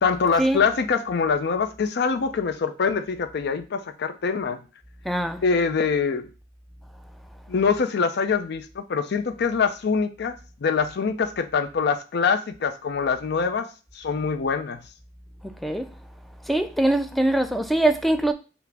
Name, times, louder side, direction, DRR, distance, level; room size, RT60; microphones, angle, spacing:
voice 1, 0.0-4.6 5.4-6.3 7.5-13.7 13.9-14.8, left 5 dB, 60° left, 0.5 m, -24 dB
voice 2, 5.0-5.4 15.4-15.9 16.4-18.3, right 1 dB, ahead, 0.3 m, -22 dB
5.8 x 2.0 x 3.3 m
head